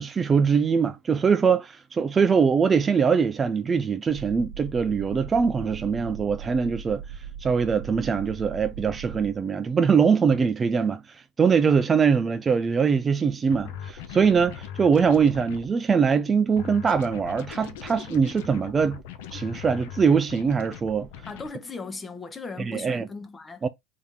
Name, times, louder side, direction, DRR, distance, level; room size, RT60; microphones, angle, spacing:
voice 1, 0.0-7.0 7.4-19.0 19.3-21.1 22.6-23.1 23.6-23.7, right 6 dB, 25° right, 0.3 m, -22 dB
sound 1, 4.1-9.4, right 8 dB, 60° right, 0.7 m, -39 dB
sound 2, 13.5-15.7 16.6-21.5, left 8 dB, 75° left, 0.6 m, -40 dB
voice 2, 21.3-23.7, left 4 dB, 20° left, 0.8 m, -37 dB
3.6 x 2.8 x 3.6 m
supercardioid pair, 105°, 0 cm